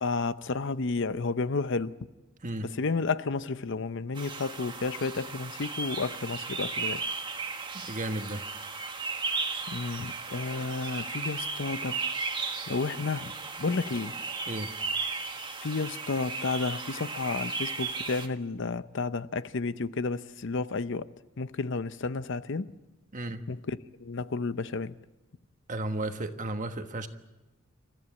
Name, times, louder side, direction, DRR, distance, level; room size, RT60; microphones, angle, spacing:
voice 1, 0.0-1.9 2.7-7.0 9.7-12.0 12.4-13.3 13.6-14.1 15.6-21.1 21.4-22.7 23.5-24.9, left 4 dB, 60° left, 0.7 m, -31 dB
sound 1, 4.2-18.3, right 4 dB, 20° right, 1.5 m, -35 dB
voice 2, 7.7-8.4 14.5-14.7 23.1-23.4 25.7-27.1, right 1 dB, 40° right, 1.4 m, -33 dB
28.5 x 14.0 x 9.6 m
head